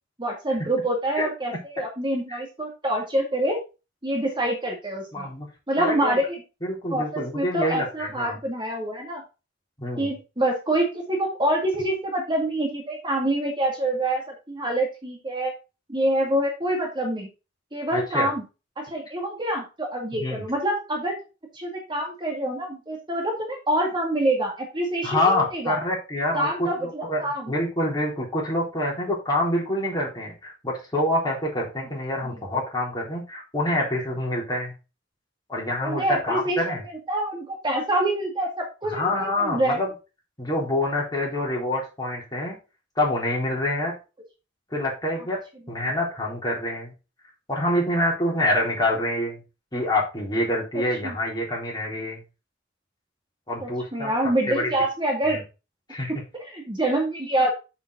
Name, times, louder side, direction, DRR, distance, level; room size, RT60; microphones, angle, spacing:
voice 1, 0.2-3.6 4.0-5.3 5.7-6.4 6.9-9.2 10.0-15.5 15.9-17.3 17.7-18.4 18.8-21.2 21.5-25.8 26.3-27.5 32.2-32.4 35.8-36.6 37.1-39.8 45.7-45.8 51.0-51.2 53.6-55.4 56.3-57.5, right 1 dB, 25° right, 1 dB, 2.1 m, -26 dB
voice 2, 5.1-5.5 5.8-6.2 6.6-8.4 9.8-10.1 17.9-18.3 20.1-20.4 25.0-27.2 27.5-34.7 35.5-36.8 38.8-39.9 40.4-42.6 43.0-43.9 44.7-45.4 45.7-46.9 47.5-49.4 49.7-52.2 53.5-54.1 54.5-54.7 55.3-55.4 55.9-56.1, left 1 dB, 20° left, -3 dB, 4.1 m, -26 dB
7.4 x 7.1 x 4.1 m, 0.29 s
head